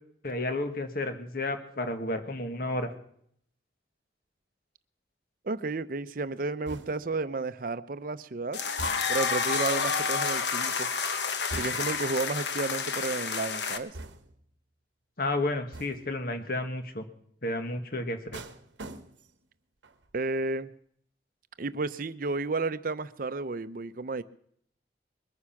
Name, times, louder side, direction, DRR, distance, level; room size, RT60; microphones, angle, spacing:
voice 1, 0.2-2.9 15.2-17.0 17.4-18.4, left 2 dB, 55° left, 1.7 m, -31 dB
voice 2, 5.4-8.6 9.1-10.9 11.5-14.0 20.1-20.7 21.6-24.2, right 3 dB, 50° right, 0.7 m, -32 dB
sound 1, 6.7-7.2 8.8-9.4 11.5-12.1 13.9-14.5 15.7-16.2 18.3-19.5 19.8-20.2, right 2 dB, 85° right, 1.1 m, -43 dB
sound 2, 8.5-13.8, left 5 dB, 70° left, 1.2 m, -29 dB
22.0 x 9.7 x 5.9 m
head